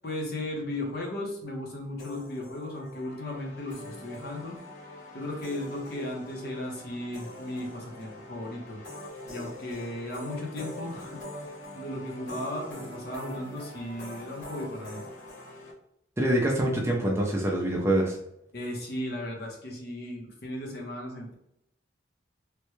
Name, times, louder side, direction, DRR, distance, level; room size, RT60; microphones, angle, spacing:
voice 1, 0.0-4.6 5.1-8.8 9.2-11.2 11.7-15.0 18.5-21.3, left 1 dB, 55° left, 0 dB, 0.8 m, -36 dB
sound 1, 2.0-15.7, left 1 dB, 70° left, 1.5 m, -43 dB
voice 2, 16.2-18.2, right 1 dB, 15° right, -2 dB, 0.4 m, -25 dB
3.3 x 2.2 x 3.0 m, 0.77 s
head